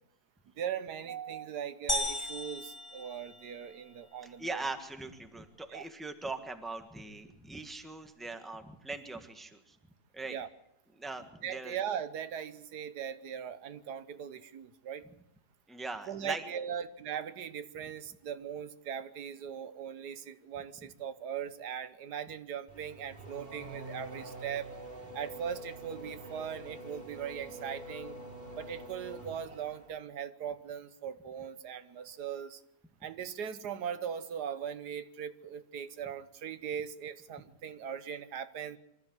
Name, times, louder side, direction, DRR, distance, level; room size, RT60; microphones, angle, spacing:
voice 1, 0.6-4.6 5.7-5.9 10.3-10.5 11.4-15.0 16.1-24.7 25.1-28.2 28.5-32.6 33.0-38.8, right 8 dB, 75° right, 12 dB, 1.5 m, -39 dB
sound 1, 1.9-3.8, left 1 dB, 15° left, 1.8 m, -36 dB
voice 2, 4.2-9.7 10.1-10.4 11.0-11.8 15.7-16.4, right 3 dB, ahead, 6 dB, 1.3 m, -41 dB
Race car auto racing / Accelerating revving vroom, 22.7-29.9, right 1 dB, 30° right, 2.8 m, -46 dB
24.5 x 14.0 x 7.9 m, 0.81 s
omnidirectional pair, 1.7 m